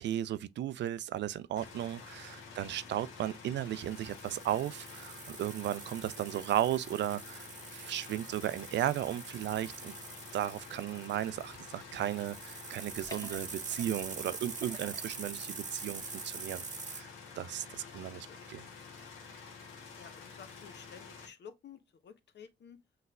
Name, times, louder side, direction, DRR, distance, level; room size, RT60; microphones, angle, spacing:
voice 1, 0.0-7.4 7.7-9.9 10.3-17.1 17.4-18.6, right 12 dB, 60° right, 0.4 m, -35 dB
sound 1, 1.5-21.3, left 5 dB, 75° left, 1.0 m, -50 dB
voice 2, 2.6-3.0 17.8-18.5 19.9-22.8, left 7 dB, 55° left, 0.8 m, -53 dB
sound 2, 3.8-17.0, right 5 dB, 35° right, 1.0 m, -45 dB
sound 3, 13.0-14.1 14.5-15.5 15.9-16.0, left 3 dB, 15° left, 1.4 m, -50 dB
5.6 x 3.2 x 2.3 m
hypercardioid pair, 40°, 21 cm